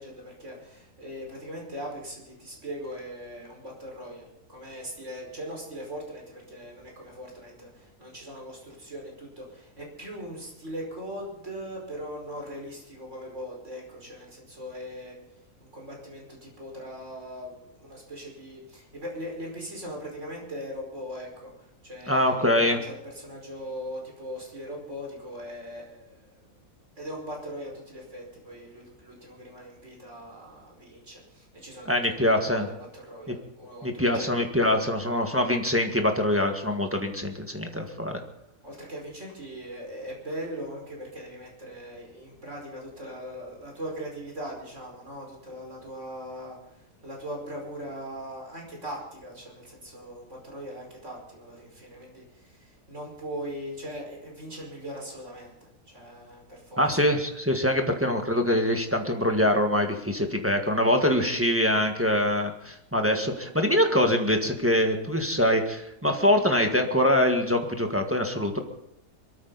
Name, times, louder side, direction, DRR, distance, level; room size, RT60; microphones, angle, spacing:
voice 1, 0.0-15.2 15.6-26.5 27.0-34.4 38.6-56.8, equal, 45° right, -1 dB, 5.5 m, -40 dB
voice 2, 22.1-22.8 31.8-32.7 33.3-33.4 33.8-38.2 56.8-68.6, left 1 dB, 10° right, 3 dB, 1.5 m, -24 dB
23.5 x 13.5 x 4.1 m, 0.79 s
omnidirectional pair, 1.7 m